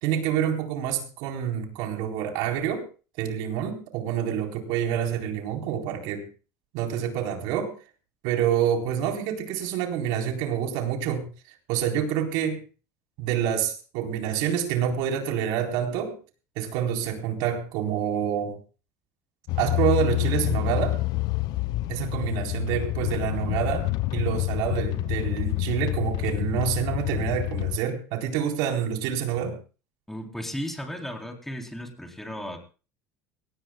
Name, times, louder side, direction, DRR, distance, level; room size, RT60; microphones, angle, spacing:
voice 1, 0.0-2.9 3.2-6.3 6.7-7.8 8.2-11.3 11.7-12.6 13.2-16.2 16.6-18.6 19.6-21.0 21.9-29.6, right 9 dB, 70° right, 2 dB, 4.2 m, -27 dB
sound 1, 19.5-27.8, left 18 dB, 60° left, 0.6 m, -27 dB
voice 2, 30.1-32.6, equal, 5° left, 2 dB, 3.8 m, -35 dB
23.0 x 18.5 x 2.4 m, 0.35 s
supercardioid pair, 125°, 8 cm